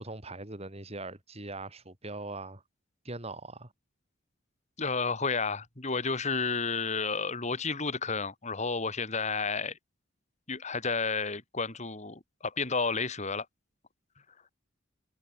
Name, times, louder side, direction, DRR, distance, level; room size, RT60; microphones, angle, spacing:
voice 1, 0.0-2.6 3.1-3.7, right 2 dB, 35° right, 3.6 m, -41 dB
voice 2, 4.8-9.8 10.5-13.5, left 4 dB, 35° left, 2.7 m, -31 dB
head